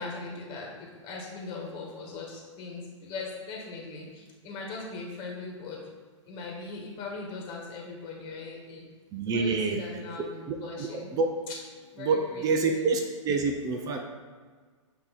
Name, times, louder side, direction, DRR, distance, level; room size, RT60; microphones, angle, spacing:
voice 1, 0.0-5.8 6.3-8.8 9.3-11.2 11.5-11.6 11.9-12.5 12.7-12.9, left 3 dB, 30° left, -1 dB, 1.4 m, -40 dB
voice 2, 9.1-9.8 10.5-11.3 12.0-14.0, right 4 dB, 25° right, 4 dB, 0.6 m, -27 dB
7.8 x 3.0 x 4.2 m, 1.5 s
hypercardioid pair, 130°, 16 cm